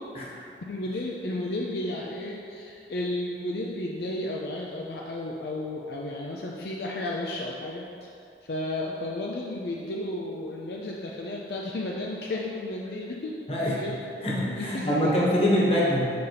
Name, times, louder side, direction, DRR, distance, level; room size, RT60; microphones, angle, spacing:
voice 1, 0.7-8.1 8.4-13.9 14.6-15.1, left 1 dB, 65° left, -3 dB, 0.5 m, -33 dB
voice 2, 14.2-16.1, equal, 35° left, -5 dB, 1.2 m, -24 dB
6.8 x 5.5 x 3.4 m, 2.5 s
head